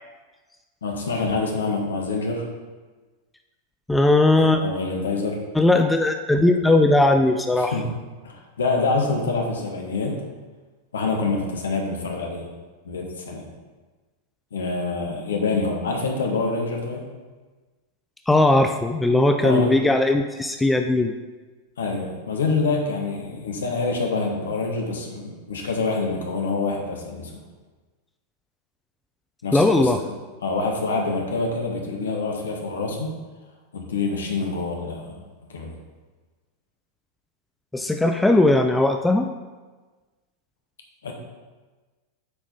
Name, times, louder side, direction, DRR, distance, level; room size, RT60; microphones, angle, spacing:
voice 1, 0.8-2.4 4.4-5.4 7.6-7.9 8.2-10.2 10.9-12.5 12.8-13.5 14.5-17.0 19.4-19.7 21.8-27.3 29.4-29.9 30.4-33.2 33.7-35.2 35.5-35.7 41.0-41.1, left 3 dB, 65° left, 1 dB, 1.5 m, -26 dB
voice 2, 3.9-4.6 5.5-7.7 18.3-21.1 29.5-30.0 37.7-39.3, left 2 dB, 5° left, 6 dB, 0.4 m, -18 dB
8.3 x 5.2 x 5.2 m, 1.3 s
figure-of-eight pair, 90°, 0 cm